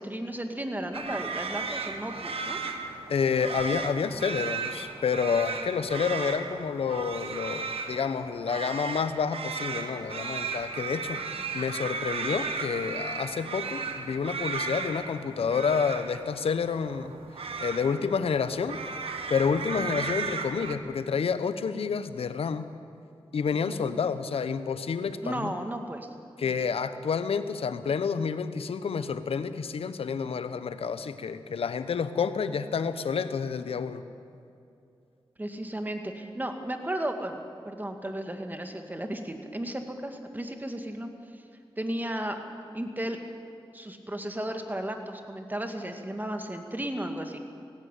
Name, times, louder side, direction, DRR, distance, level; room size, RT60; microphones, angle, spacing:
voice 1, 0.0-2.6 23.6-24.0 25.2-26.1 26.4-26.7 35.4-41.4 41.8-42.4 42.7-43.2 43.7-47.4, right 1 dB, 20° right, 5 dB, 2.2 m, -34 dB
sound 1, 0.9-20.8, right 4 dB, 85° right, 1.4 m, -35 dB
voice 2, 3.1-11.2 11.5-17.2 17.6-18.8 19.3-22.6 23.3-25.5 26.4-34.0, left 6 dB, 90° left, 12 dB, 1.0 m, -29 dB
18.5 x 16.5 x 8.5 m, 2.5 s
cardioid pair, 65°, 10 cm